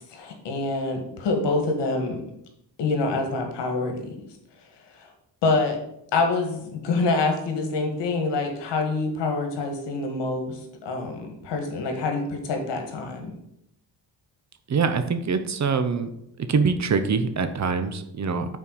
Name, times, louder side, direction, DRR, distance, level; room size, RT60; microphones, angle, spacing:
voice 1, 0.1-2.2 2.8-4.1 4.9-5.1 5.4-5.8 6.1-13.3, left 3 dB, 85° left, 4 dB, 1.6 m, -26 dB
voice 2, 14.7-16.1 16.5-18.6, right 5 dB, 40° right, 10 dB, 0.8 m, -24 dB
5.8 x 4.5 x 6.3 m, 0.77 s
cardioid pair, 95°, 41 cm